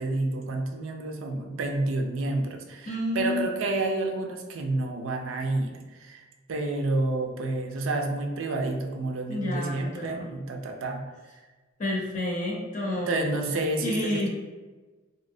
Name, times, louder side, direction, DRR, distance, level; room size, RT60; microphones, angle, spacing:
voice 1, 0.0-5.7 6.0-6.2 6.5-11.0 13.1-14.3, right 2 dB, 85° right, 4 dB, 0.4 m, -29 dB
voice 2, 2.9-3.5 9.3-10.3 11.8-13.4 13.8-14.3, left 1 dB, 40° left, -3 dB, 0.7 m, -30 dB
3.1 x 2.8 x 2.6 m, 1.3 s
head